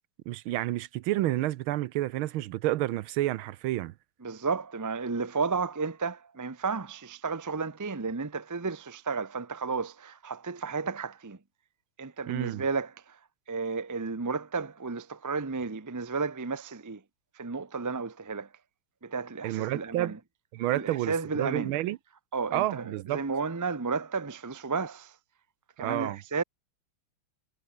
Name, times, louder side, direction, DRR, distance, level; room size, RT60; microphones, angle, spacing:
voice 1, 0.3-3.9 12.3-12.6 19.4-20.2 20.5-22.0 22.5-23.2 25.8-26.2, right 15 dB, 75° right, 1.5 m, -30 dB
voice 2, 4.2-11.4 12.0-13.2 13.5-17.0 17.3-18.5 19.0-20.2 20.7-21.8 22.3-25.1 25.8-26.4, right 4 dB, 25° right, 0.4 m, -33 dB
omnidirectional pair, 2.3 m